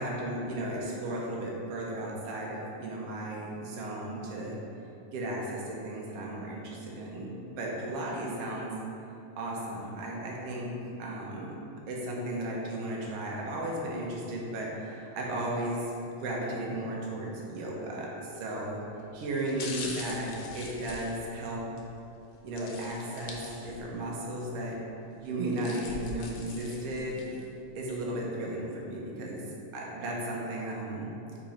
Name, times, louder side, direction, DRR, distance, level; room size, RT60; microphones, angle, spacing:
voice 1, 0.0-4.6 5.1-8.7 9.4-10.7 11.0-11.5 11.9-15.8 16.2-18.8 19.1-21.6 22.4-24.8 25.2-27.3 27.7-29.4 29.7-31.1, right 1 dB, 65° right, -3 dB, 1.5 m, -35 dB
sound 1, 18.4-18.6 19.3-21.9 22.6-24.0 24.4-24.5 25.3-27.5 27.9-28.0, left 3 dB, 75° left, 1.9 m, -43 dB
5.2 x 4.4 x 5.0 m, 2.8 s
omnidirectional pair, 3.7 m